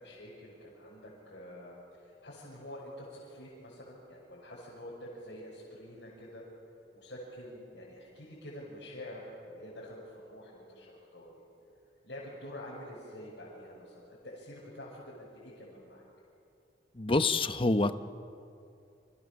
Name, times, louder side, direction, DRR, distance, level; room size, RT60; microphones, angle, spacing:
voice 1, 0.0-6.4 6.9-11.3 12.0-16.1, left 1 dB, 75° left, -7 dB, 6.8 m, -47 dB
voice 2, 16.9-17.9, left 2 dB, 30° left, 10 dB, 0.9 m, -26 dB
30.0 x 27.0 x 7.1 m, 2.5 s
head